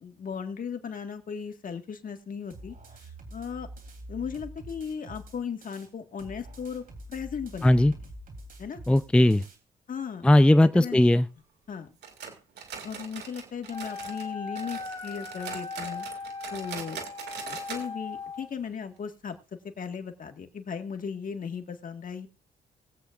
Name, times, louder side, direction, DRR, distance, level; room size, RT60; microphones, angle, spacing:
voice 1, 0.0-2.8 3.0-3.7 4.1-7.8 8.6-8.8 9.9-10.3 10.7-11.0 11.7-11.9 12.8-16.2 16.5-17.0 17.4-19.4 19.8-22.3, left 6 dB, 55° left, 1.7 m, -37 dB
sound 1, 2.5-5.9 6.2-9.6, equal, 55° right, 3.3 m, -45 dB
voice 2, 7.6-7.9 8.9-9.4 10.2-11.3, left 1 dB, 5° left, 0.5 m, -18 dB
sound 2, 12.0-14.3 14.5-17.9 18.1-18.2 18.6-18.7 19.3-19.4, right 7 dB, 85° right, 2.3 m, -41 dB
Wind instrument woodwind instrument, 13.7-18.5, left 4 dB, 25° left, 2.1 m, -38 dB
20.5 x 8.3 x 2.5 m
cardioid pair, 70°, 17 cm